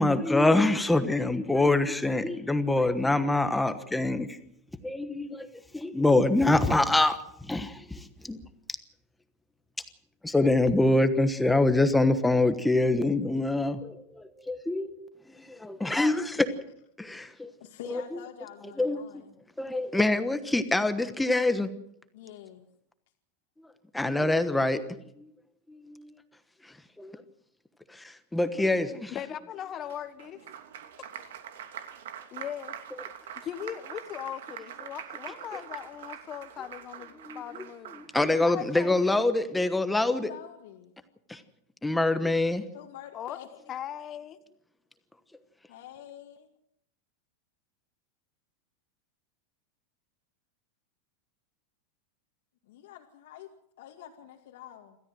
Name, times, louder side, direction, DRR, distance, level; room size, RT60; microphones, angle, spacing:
voice 1, 0.0-4.4 4.8-5.5 5.7-8.4 10.2-16.5 17.0-17.5 17.9-18.2 18.8-19.0 19.6-21.7 23.9-24.8 25.2-25.3 25.7-26.1 26.6-27.2 27.9-29.1 35.5-35.6 37.2-37.4 37.9-40.3 41.3-41.4 41.8-42.6, left 2 dB, 5° left, 10 dB, 1.2 m, -25 dB
voice 2, 17.6-19.3 22.1-22.7 40.0-40.9 42.7-43.6 45.7-46.5 52.7-53.5 53.8-55.0, left 10 dB, 65° left, 1 dB, 2.2 m, -46 dB
voice 3, 29.1-30.4 31.1-31.2 32.3-32.7 33.3-38.0 38.4-39.3 43.1-43.4 43.7-44.4, left 10 dB, 25° left, 11 dB, 1.4 m, -39 dB
Applause, 29.9-38.6, right 9 dB, 85° right, 2.8 m, -44 dB
27.5 x 13.5 x 7.8 m, 0.74 s
supercardioid pair, 170°, 0 cm